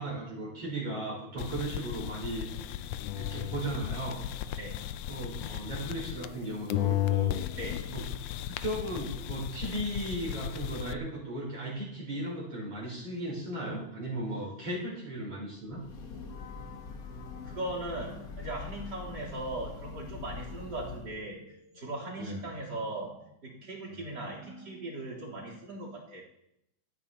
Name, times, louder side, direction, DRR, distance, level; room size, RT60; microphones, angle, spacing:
voice 1, 0.0-2.5 3.1-4.2 5.1-7.4 7.9-8.0 8.6-15.8 22.2-22.4 23.9-24.0, right 1 dB, 50° right, -4 dB, 6.3 m, -36 dB
sound 1, 1.4-6.4 6.7-10.9, left 12 dB, 85° left, 1.4 m, -34 dB
voice 2, 4.6-4.9 5.4-5.7 7.6-8.1 16.0-16.3 17.4-26.2, right 2 dB, 35° right, -2 dB, 4.0 m, -39 dB
Breathing / Train, 15.6-21.2, left 5 dB, 60° left, 0.9 m, -43 dB
26.5 x 9.5 x 2.9 m, 0.79 s
omnidirectional pair, 3.4 m